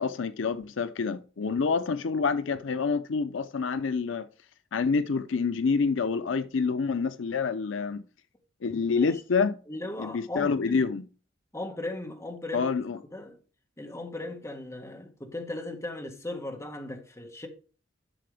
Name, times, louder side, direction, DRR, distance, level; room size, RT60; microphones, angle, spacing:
voice 1, 0.0-4.3 4.7-8.0 8.6-9.6 10.0-11.1 12.5-13.0, left 5 dB, 75° left, 0.5 m, -27 dB
voice 2, 8.7-9.2 9.7-10.9 11.5-12.7 13.1-13.4 13.8-17.5, left 2 dB, 15° left, 1.6 m, -37 dB
11.5 x 6.7 x 3.4 m
head